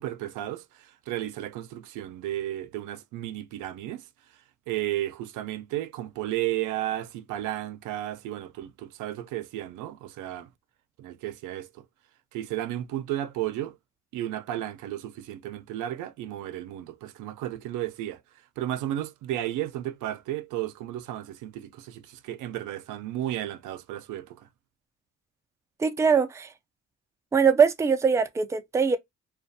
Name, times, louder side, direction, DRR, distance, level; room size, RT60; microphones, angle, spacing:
voice 1, 0.0-4.1 4.7-10.5 11.0-11.8 12.3-13.8 14.1-18.2 18.6-24.5, right 13 dB, 85° right, 0.5 m, -33 dB
voice 2, 25.8-26.5 27.3-29.0, right 6 dB, 10° right, 0.3 m, -22 dB
2.4 x 2.2 x 2.6 m
cardioid pair, 90°, 30 cm